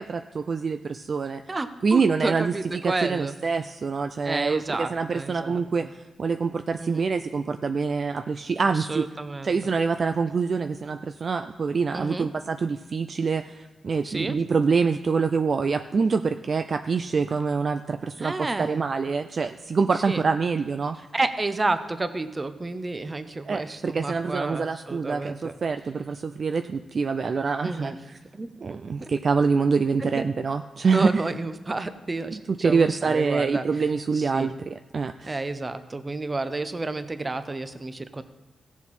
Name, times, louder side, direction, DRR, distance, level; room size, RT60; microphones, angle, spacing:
voice 1, 0.0-1.4 1.8-9.1 9.4-21.0 23.4-28.2 28.6-31.3 32.5-35.4, right 5 dB, 45° right, 8 dB, 0.4 m, -25 dB
voice 2, 1.5-3.4 4.2-5.9 6.8-7.1 8.7-9.7 11.9-12.3 14.0-14.4 18.2-18.8 20.1-20.2 21.1-25.5 27.6-28.0 28.3-28.5 30.0-30.3 30.9-33.7 34.1-34.5 35.2-38.2, right 2 dB, 25° right, 11 dB, 0.7 m, -30 dB
16.5 x 7.1 x 4.2 m, 1.2 s
wide cardioid pair, 110°, 0 cm